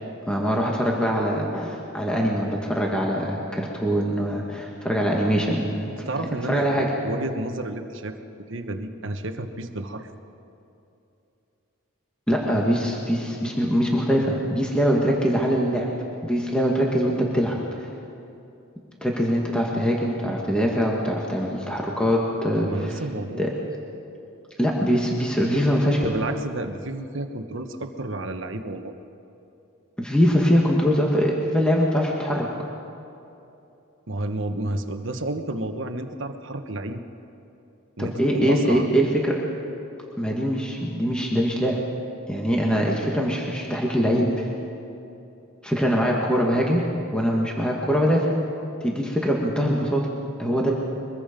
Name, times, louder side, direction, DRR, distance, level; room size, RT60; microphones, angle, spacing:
voice 1, 0.3-5.9 6.5-6.9 12.3-15.9 16.2-17.6 19.0-23.0 23.4-23.5 24.6-26.1 30.0-32.5 38.0-39.4 40.2-41.8 42.3-44.5 45.6-48.4 48.8-50.1 50.4-50.7, equal, 5° left, -2 dB, 1.8 m, -23 dB
voice 2, 6.0-8.2 8.5-10.1 22.6-23.4 26.0-28.9 34.1-37.0 38.0-38.9, right 2 dB, 60° right, 7 dB, 1.3 m, -31 dB
23.0 x 22.0 x 5.3 m, 2.8 s
head